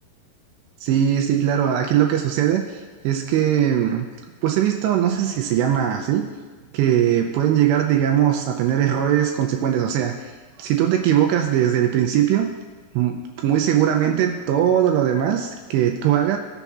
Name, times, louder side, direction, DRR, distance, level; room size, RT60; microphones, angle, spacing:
voice 1, 0.8-4.1 4.4-6.2 6.7-10.3 10.6-12.5 12.9-16.4, right 10 dB, 85° right, 3 dB, 2.5 m, -20 dB
16.5 x 7.0 x 2.4 m, 1.4 s
omnidirectional pair, 5.3 m